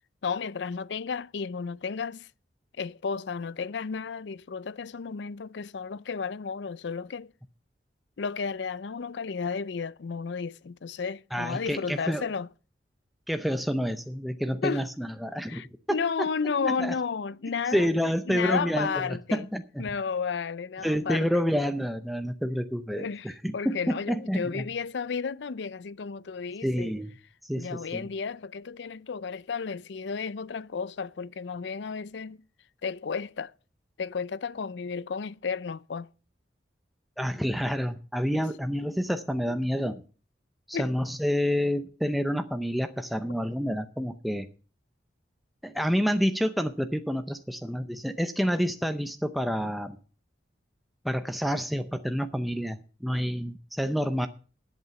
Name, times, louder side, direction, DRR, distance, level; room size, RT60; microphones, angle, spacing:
voice 1, 0.2-2.3 2.8-7.3 8.2-12.5 14.6-14.9 15.5-17.9 18.3-19.5 19.8-21.4 22.9-26.9 27.6-32.4 32.8-33.5 34.0-36.1 38.3-38.4 40.7-40.9, left 5 dB, 75° left, 0.5 m, -33 dB
voice 2, 11.3-12.3 13.3-15.6 15.9-16.9 17.7-19.8 20.8-24.7 26.6-27.1 27.4-28.0 37.2-40.0 40.7-44.5 45.6-50.0 51.0-54.3, equal, ahead, 0.6 m, -29 dB
10.5 x 8.3 x 7.0 m
head